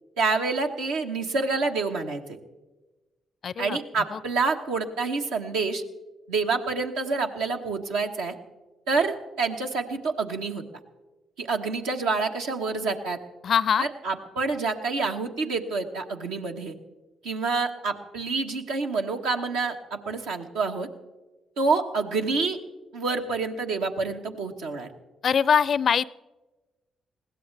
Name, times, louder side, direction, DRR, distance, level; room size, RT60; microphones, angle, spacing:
voice 1, 0.2-2.2 3.6-5.8 6.3-8.3 8.9-10.6 11.4-13.2 13.8-16.7 17.2-20.9 21.6-22.6 22.9-24.9, right 4 dB, 85° right, 2 dB, 1.3 m, -27 dB
voice 2, 3.4-3.8 4.1-4.2 13.4-13.9 25.2-26.1, left 7 dB, 60° left, 21 dB, 0.4 m, -22 dB
21.0 x 16.5 x 3.3 m, 1.2 s
hypercardioid pair, 50°, 0 cm